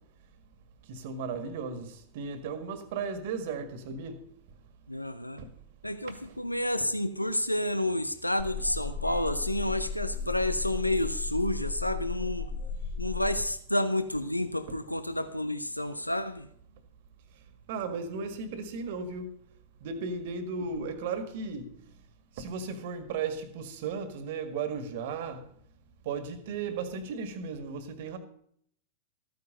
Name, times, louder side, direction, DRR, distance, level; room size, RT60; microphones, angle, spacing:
voice 1, 0.9-4.2 5.4-5.5 6.0-6.1 17.7-19.3 19.8-21.7 22.4-25.4 26.1-28.2, right 5 dB, 50° right, 1.8 m, -35 dB
voice 2, 4.9-5.4 5.8-12.5 13.0-16.5 20.8-20.9 26.6-26.7, left 1 dB, 85° left, 0.7 m, -30 dB
sound 1, 8.4-13.4, left 4 dB, 55° left, 2.3 m, -35 dB
14.0 x 9.4 x 5.4 m
figure-of-eight pair, 90°, 0 cm